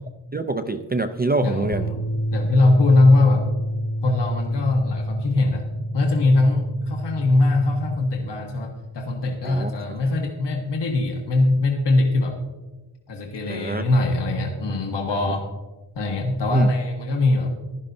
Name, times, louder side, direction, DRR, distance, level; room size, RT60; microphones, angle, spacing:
voice 1, 0.3-1.8 9.4-9.7 13.5-13.8 16.5-16.7, right 3 dB, 25° right, 7 dB, 0.3 m, -25 dB
voice 2, 1.4-3.5 4.0-5.7 5.9-12.4 13.1-15.5 15.9-17.5, left 2 dB, 60° left, 1 dB, 1.4 m, -21 dB
sound 1, 1.7-8.0, equal, 35° left, 1.4 m, -28 dB
15.5 x 11.5 x 2.7 m, 1.1 s
wide cardioid pair, 140°, 46 cm